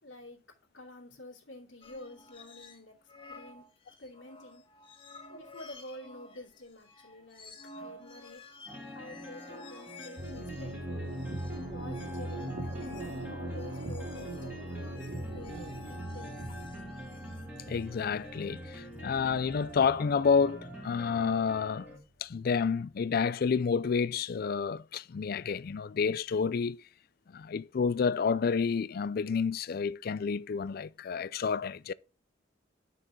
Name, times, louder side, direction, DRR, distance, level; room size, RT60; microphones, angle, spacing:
voice 1, 0.0-0.4 0.7-3.0 3.3-3.6 4.0-4.6 5.3-11.1 11.7-12.6 12.9-16.4, left 1 dB, 85° left, 2.6 m, -49 dB
sound 1, 1.8-2.8 3.1-19.8, left 3 dB, 30° left, 1.8 m, -53 dB
sound 2, 8.7-22.0, equal, 10° right, 2.2 m, -46 dB
sound 3, 10.2-21.7, right 1 dB, 80° right, 2.6 m, -41 dB
voice 2, 17.7-21.9 22.2-26.8 27.3-31.9, left 5 dB, 50° left, 0.4 m, -29 dB
9.1 x 6.2 x 3.7 m
head